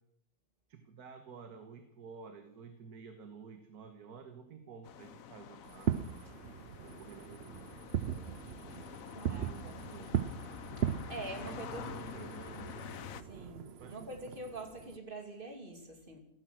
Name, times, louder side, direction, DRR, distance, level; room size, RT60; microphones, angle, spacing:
voice 1, 0.7-6.0 6.8-7.8 8.1-8.4 9.4-10.1 11.3-12.9 13.8-14.2, right 5 dB, 90° right, 7 dB, 1.9 m, -51 dB
sound 1, 4.8-13.2, left 9 dB, 65° left, 1.2 m, -47 dB
Fireworks, 5.7-15.0, right 9 dB, 55° right, 0.8 m, -39 dB
voice 2, 9.1-9.7 10.8-12.3 13.3-16.2, right 2 dB, 35° right, 4 dB, 2.9 m, -45 dB
16.0 x 14.0 x 6.3 m, 0.76 s
omnidirectional pair, 1.6 m